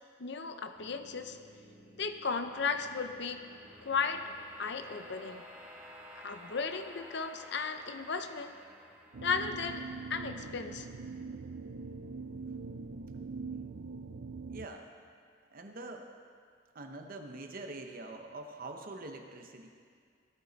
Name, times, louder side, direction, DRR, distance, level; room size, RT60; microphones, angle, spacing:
voice 1, 0.2-1.4 2.0-3.4 3.8-4.2 4.6-5.4 6.2-8.5 9.2-9.8 10.1-10.9, left 5 dB, 65° left, 8 dB, 0.7 m, -35 dB
sound 1, 0.7-11.9, equal, 10° right, 3.1 m, -54 dB
sound 2, 9.1-14.7, right 4 dB, 65° right, 0.5 m, -42 dB
voice 2, 14.5-14.9 15.5-16.1 16.7-19.7, right 2 dB, 50° right, 4 dB, 0.9 m, -44 dB
17.5 x 13.5 x 4.0 m, 2.2 s
head